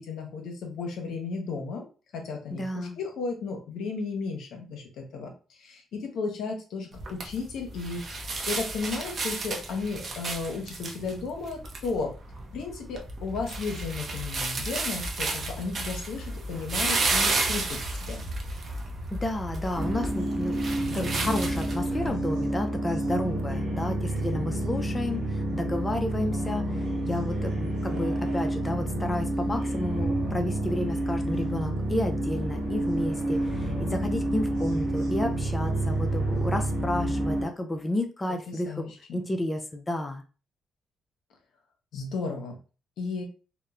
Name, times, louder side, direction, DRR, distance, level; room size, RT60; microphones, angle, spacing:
voice 1, 0.0-1.8 2.1-8.0 8.5-12.1 12.5-18.2 38.5-39.3 41.9-42.6 43.0-43.2, left 4 dB, 75° left, 2 dB, 0.7 m, -34 dB
voice 2, 2.5-3.0 19.1-40.2, left 1 dB, 20° left, 4 dB, 0.4 m, -31 dB
sound 1, 6.9-22.1, right 2 dB, 50° right, 0.6 m, -32 dB
sound 2, 19.7-37.4, right 1 dB, 85° right, 0.9 m, -29 dB
2.9 x 2.0 x 2.3 m, 0.35 s
cardioid pair, 90°, 0 cm